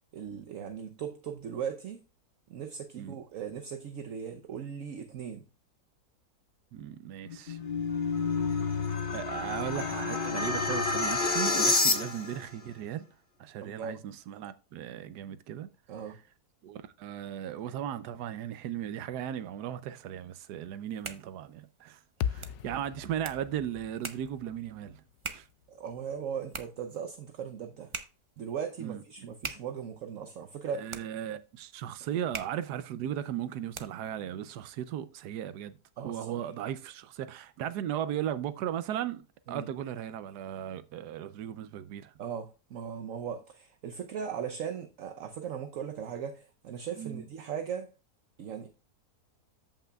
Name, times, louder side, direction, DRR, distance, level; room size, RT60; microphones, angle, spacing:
voice 1, 0.1-2.0 2.5-5.4 13.6-14.0 15.9-16.2 22.2-22.3 22.7-22.8 25.7-27.9 28.4-30.9 36.0-36.4 39.5-39.7 42.2-47.9 48.4-48.7, right 7 dB, 60° right, 1.1 m, -38 dB
voice 2, 6.7-7.6 9.1-13.0 13.4-15.7 16.6-25.0 25.3-25.5 28.8-29.0 30.7-39.2 39.5-42.1 47.0-47.2, right 10 dB, 90° right, 1.2 m, -37 dB
sound 1, 7.3-12.4, left 3 dB, 35° left, 1.4 m, -29 dB
sound 2, 20.7-34.2, right 3 dB, 30° right, 0.6 m, -46 dB
sound 3, 22.2-26.5, left 9 dB, 80° left, 1.1 m, -39 dB
14.0 x 5.7 x 2.3 m
omnidirectional pair, 1.7 m